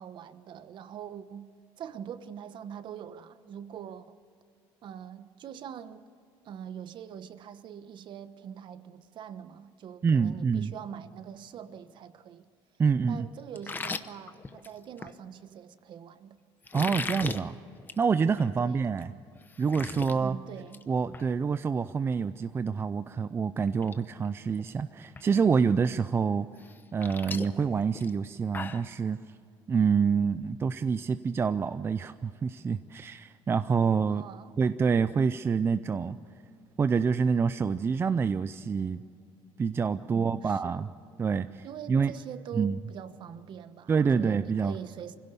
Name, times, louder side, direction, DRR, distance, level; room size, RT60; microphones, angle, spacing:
voice 1, 0.0-1.5 1.8-4.2 4.8-6.1 6.4-12.5 13.1-16.4 18.6-18.9 20.1-20.9 34.1-34.5 40.1-40.8 41.6-45.2, right 8 dB, 50° right, 1.1 m, -43 dB
voice 2, 10.0-10.7 12.8-13.3 16.7-17.6 18.0-19.1 19.6-20.4 20.9-26.5 26.9-29.2 29.7-34.2 34.6-36.2 36.8-39.0 39.6-40.9 41.2-42.1 42.5-42.8 43.9-44.8, right 5 dB, 20° right, 0.4 m, -27 dB
sound 1, 13.6-15.1 16.6-17.4 17.8-18.0 18.4-18.5 19.0-19.1 19.4-20.1 20.5-20.8 21.1-21.3 23.1-23.2 23.7-24.0 24.2-24.7 25.2-25.3 26.6-28.9, left 4 dB, 20° left, 0.9 m, -38 dB
24.5 x 16.5 x 8.3 m
cardioid pair, 140°, 11 cm